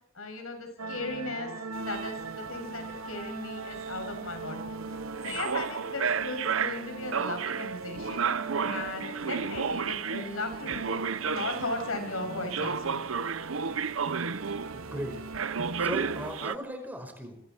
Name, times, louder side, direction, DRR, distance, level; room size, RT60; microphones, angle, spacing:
voice 1, 0.2-1.5 1.8-4.7 5.2-8.3 8.7-13.0, left 2 dB, 80° left, 5 dB, 7.0 m, -37 dB
sound 1, 0.8-16.3, right 3 dB, 85° right, 1.5 m, -40 dB
sound 2, 1.8-12.0 12.5-15.0 15.3-16.6, right 6 dB, 70° right, 0.8 m, -32 dB
voice 2, 14.7-15.2 15.8-17.4, equal, 10° right, 4 dB, 5.1 m, -37 dB
28.0 x 23.5 x 4.5 m, 0.71 s
head